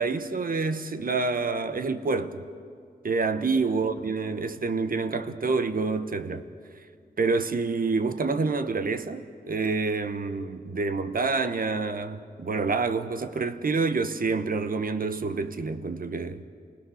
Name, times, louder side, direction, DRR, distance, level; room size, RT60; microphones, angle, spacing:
voice 1, 0.0-2.5 3.0-6.5 7.2-16.4, right 4 dB, 65° right, 1.0 m, -27 dB
28.5 x 20.5 x 6.4 m
wide cardioid pair, 75°, 16 cm